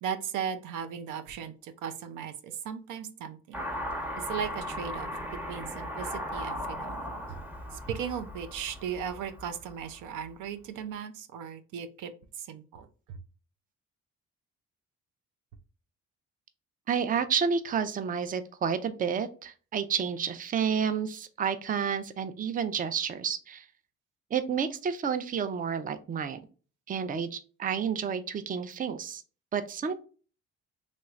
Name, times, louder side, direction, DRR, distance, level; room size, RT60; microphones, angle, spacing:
voice 1, 0.0-3.6 4.2-5.1 5.5-6.9 7.7-12.1 12.4-13.2, right 7 dB, 85° right, 9 dB, 0.5 m, -37 dB
Car passing by / Accelerating revving vroom, 3.5-10.1, equal, 5° right, 0.8 m, -37 dB
voice 2, 16.9-23.7 24.3-26.4 26.9-29.2 29.5-30.0, right 7 dB, 30° right, 11 dB, 0.4 m, -30 dB
3.1 x 3.1 x 2.3 m, 0.37 s
cardioid pair, 90°, 30 cm